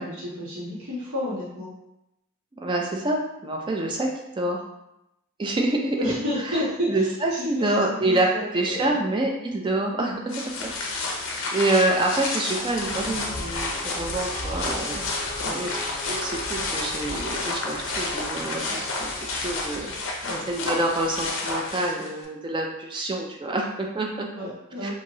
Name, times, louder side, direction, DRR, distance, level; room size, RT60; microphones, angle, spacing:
voice 1, 0.0-1.7 6.0-7.0 7.3-8.9 15.4-15.6 20.2-20.4 24.3-24.9, left 1 dB, 85° right, -7 dB, 1.3 m, -31 dB
voice 2, 2.6-4.1 4.4-4.6 5.4-6.6 6.9-8.3 8.5-10.4 10.8-15.0 15.5-15.8 16.1-24.3 24.8-24.9, right 2 dB, 20° right, 1 dB, 0.3 m, -27 dB
sound 1, 10.3-22.2, left 3 dB, 55° left, 0.5 m, -30 dB
Singing / Musical instrument, 12.7-20.2, equal, 25° left, 0.9 m, -40 dB
2.9 x 2.6 x 2.6 m, 0.86 s
head